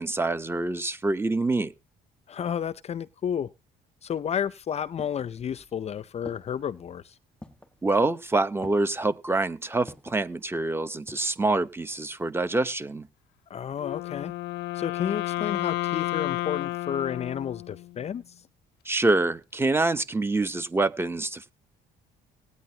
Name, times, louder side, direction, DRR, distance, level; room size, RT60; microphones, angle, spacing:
voice 1, 0.0-1.7 7.8-13.1 18.8-21.5, right 2 dB, 15° right, 0.9 m, -26 dB
voice 2, 2.3-3.5 4.0-7.2 13.5-14.3 14.7-18.3, left 8 dB, 40° left, 0.5 m, -31 dB
sound 1, 4.6-5.8 6.3-6.8 7.4-7.8 8.6-9.1 9.9-10.3 10.8-11.4 11.7-11.8, left 1 dB, 5° left, 1.5 m, -47 dB
Wind instrument woodwind instrument, 13.8-18.0, left 18 dB, 85° left, 0.5 m, -31 dB
18.5 x 9.5 x 2.8 m
cardioid pair, 110°, 17 cm